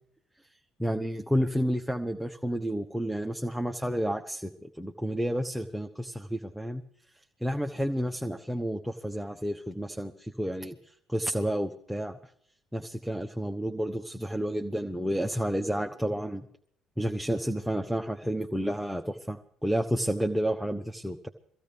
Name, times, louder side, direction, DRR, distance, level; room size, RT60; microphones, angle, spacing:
voice 1, 0.8-6.8 7.4-12.2 12.7-16.5 17.0-21.3, equal, 5° right, 3 dB, 0.9 m, -30 dB
24.0 x 15.0 x 3.5 m, 0.65 s
figure-of-eight pair, 50°, 0 cm